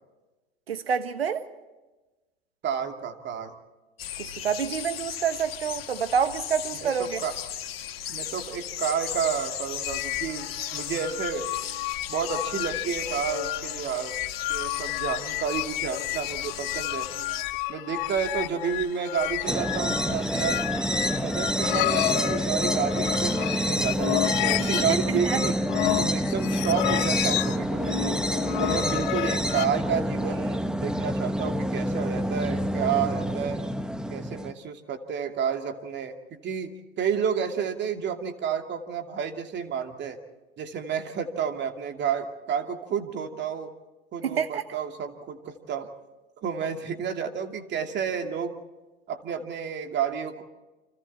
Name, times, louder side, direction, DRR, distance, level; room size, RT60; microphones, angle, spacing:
voice 1, 0.7-1.5 4.2-7.2 24.6-24.8 25.1-25.4 44.2-44.6, right 7 dB, 85° right, 1.4 m, -28 dB
voice 2, 2.6-3.5 6.8-7.3 8.1-11.5 12.1-14.1 14.5-17.1 17.7-20.8 21.2-25.6 26.0-28.2 28.6-33.6 34.1-40.2 40.6-43.7 44.1-45.9 46.4-48.5 49.1-50.4, right 7 dB, 35° right, 2.6 m, -30 dB
sound 1, 4.0-17.4, left 10 dB, 75° left, 2.0 m, -37 dB
sound 2, 9.8-29.7, left 19 dB, 55° left, 0.7 m, -31 dB
sound 3, 19.5-34.5, equal, ahead, 1.2 m, -27 dB
29.5 x 26.0 x 4.3 m
hypercardioid pair, 85°, 30 cm